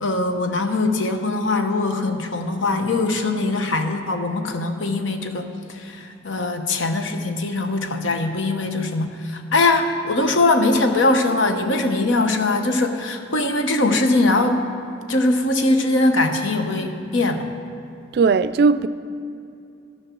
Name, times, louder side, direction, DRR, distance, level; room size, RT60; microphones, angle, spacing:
voice 1, 0.0-5.5 5.7-14.7 15.1-17.5, left 2 dB, 90° left, 0.9 m, -21 dB
voice 2, 18.1-18.9, right 4 dB, 55° right, 0.3 m, -17 dB
12.5 x 6.7 x 6.1 m
head